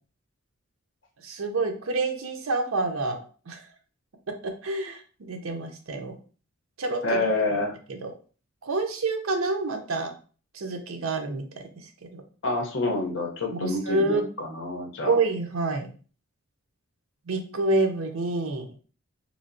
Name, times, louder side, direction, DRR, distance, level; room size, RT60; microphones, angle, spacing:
voice 1, 1.2-3.2 3.5-3.7 4.4-6.2 6.8-7.2 7.9-8.1 8.6-10.1 10.5-12.2 13.5-14.3 15.0-15.9 17.3-18.7, right 3 dB, 70° right, 5 dB, 0.6 m, -28 dB
voice 2, 7.0-7.7 12.4-15.1, left 2 dB, 60° left, 2 dB, 0.8 m, -27 dB
3.2 x 2.7 x 2.6 m, 0.39 s
head